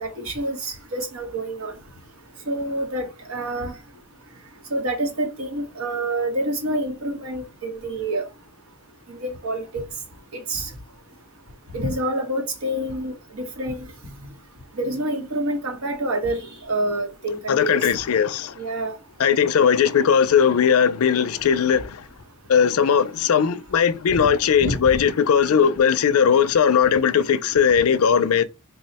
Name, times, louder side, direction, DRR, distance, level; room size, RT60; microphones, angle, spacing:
voice 1, 0.0-1.7 2.5-3.7 4.7-8.2 9.1-9.8 10.5-10.7 11.7-13.8 14.8-17.8 18.6-18.9 24.7-24.8, right 1 dB, 75° right, 1.0 m, -27 dB
voice 2, 17.5-18.5 19.2-22.0 22.5-28.4, left 7 dB, 75° left, 0.4 m, -18 dB
3.8 x 2.1 x 4.0 m
head